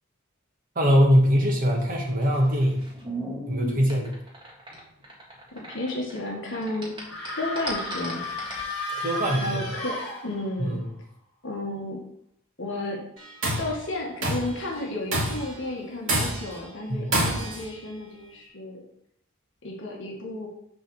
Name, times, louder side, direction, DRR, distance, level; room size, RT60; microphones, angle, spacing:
voice 1, 0.7-2.9 3.5-4.2 8.9-9.7 10.6-10.8 16.9-17.1, equal, 40° right, 0 dB, 1.7 m, -22 dB
sound 1, 1.9-6.3 6.5-8.7, right 1 dB, 20° right, 1.8 m, -37 dB
voice 2, 5.5-6.9 7.3-8.2 9.4-10.0 10.2-10.8 11.4-12.0 12.6-13.0 13.6-18.8 19.6-20.5, left 2 dB, 60° left, -2 dB, 1.7 m, -32 dB
sound 2, 7.0-10.7, left 2 dB, 10° left, 3.3 m, -33 dB
Tools, 13.2-13.7 14.2-14.6 15.1-15.5 16.1-16.6 17.1-17.7, right 1 dB, 65° right, 2.5 m, -26 dB
6.8 x 4.1 x 6.4 m, 0.72 s
head